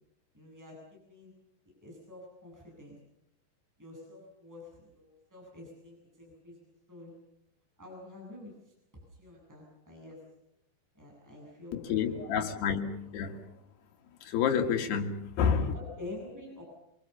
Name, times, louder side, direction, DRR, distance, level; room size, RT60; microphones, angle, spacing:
voice 1, 0.3-1.3 1.8-3.0 3.8-6.6 6.9-7.1 7.8-10.2 10.9-12.2 13.0-13.4 15.7-16.6, left 2 dB, 5° right, -2 dB, 7.6 m, -48 dB
voice 2, 11.7-13.4 14.3-15.7, left 7 dB, 80° left, 3 dB, 4.1 m, -29 dB
26.5 x 24.0 x 7.0 m, 0.79 s
omnidirectional pair, 4.7 m